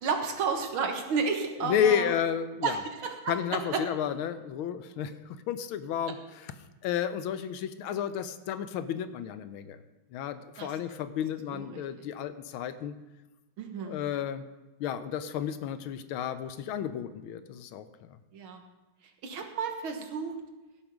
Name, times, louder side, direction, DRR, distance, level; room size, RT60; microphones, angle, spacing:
voice 1, 0.0-2.1 2.6-3.8 6.0-6.1 10.6-10.7 11.5-11.8 13.6-14.0 18.3-18.6 19.2-20.3, right 5 dB, 75° right, 5 dB, 2.1 m, -32 dB
voice 2, 1.6-2.8 3.3-6.5 6.8-9.8 10.1-12.9 13.8-14.5 14.8-18.1, left 9 dB, 80° left, 12 dB, 1.5 m, -32 dB
16.5 x 7.2 x 5.1 m, 1.1 s
omnidirectional pair, 2.3 m